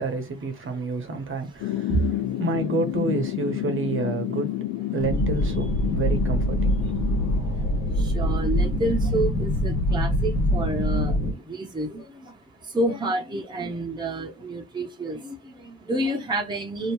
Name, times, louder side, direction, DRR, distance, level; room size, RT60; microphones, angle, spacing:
voice 1, 0.0-1.9 2.4-4.5 4.9-6.7, right 3 dB, 40° right, 1.0 m, -29 dB
voice 2, 0.6-2.4 6.8-16.9, right 2 dB, 15° right, 0.9 m, -30 dB
sound 1, 1.6-7.4, left 14 dB, 85° left, 0.5 m, -30 dB
sound 2, 5.0-11.3, equal, 60° left, 1.6 m, -24 dB
2.9 x 2.7 x 3.0 m
cardioid pair, 90°, 30 cm